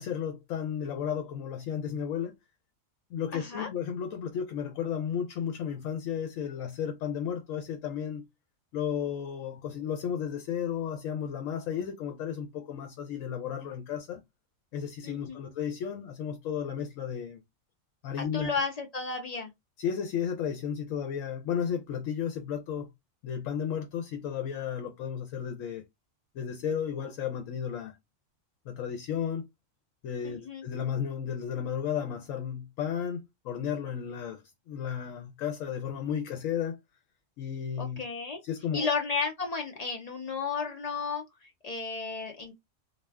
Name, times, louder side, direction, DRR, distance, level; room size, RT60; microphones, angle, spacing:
voice 1, 0.0-2.3 3.1-8.2 8.7-14.2 14.7-17.4 18.0-18.5 19.8-22.9 23.2-25.8 26.3-28.0 28.7-29.5 30.0-36.8 37.4-38.0 38.4-38.9, left 8 dB, 85° left, 1.0 m, -33 dB
voice 2, 3.3-3.7 15.0-15.4 18.2-19.5 30.2-30.6 37.8-38.4 38.7-42.5, left 5 dB, 50° left, 0.4 m, -33 dB
2.3 x 2.3 x 3.3 m
omnidirectional pair, 1.3 m